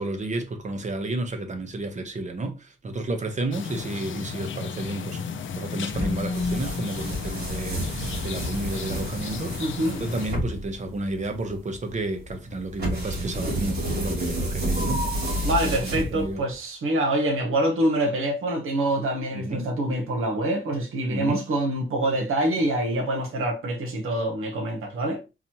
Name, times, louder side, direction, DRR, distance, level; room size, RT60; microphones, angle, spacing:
voice 1, 0.0-5.2 5.6-7.8 8.2-9.6 10.0-15.0 15.6-16.4 19.3-19.7 21.1-21.4, right 2 dB, 35° right, 0.8 m, -31 dB
sound 1, 3.5-10.3, left 5 dB, 70° left, 0.5 m, -33 dB
sound 2, 5.9-16.5, right 1 dB, 50° right, 2.5 m, -30 dB
voice 2, 9.6-10.0 15.4-25.2, right 1 dB, 85° right, 0.9 m, -25 dB
3.9 x 2.9 x 2.8 m
wide cardioid pair, 140°, 21 cm